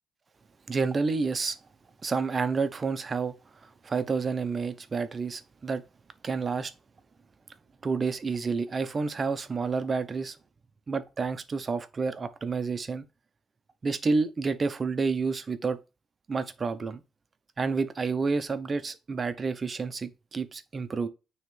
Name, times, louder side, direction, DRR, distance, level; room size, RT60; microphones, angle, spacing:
voice 1, 0.7-1.6 2.0-3.4 3.6-5.8 6.2-6.7 7.8-10.4 10.9-13.0 13.8-15.8 16.3-17.0 17.6-21.1, right 4 dB, 35° right, 0.8 m, -29 dB
9.2 x 3.2 x 3.3 m
cardioid pair, 90°, 0 cm